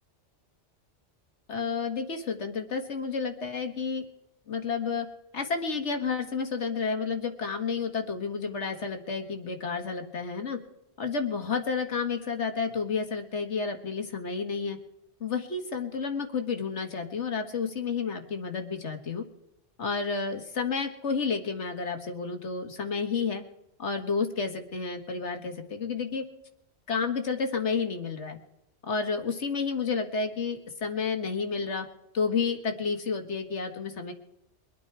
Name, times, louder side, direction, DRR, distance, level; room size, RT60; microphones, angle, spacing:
voice 1, 1.5-4.0 4.5-5.1 5.3-10.6 11.0-14.8 15.2-19.2 19.8-23.4 23.8-26.2 26.9-28.4 28.8-31.9 32.1-34.1, left 5 dB, 70° left, 6 dB, 1.9 m, -31 dB
23.5 x 9.3 x 4.7 m, 0.84 s
omnidirectional pair, 1.2 m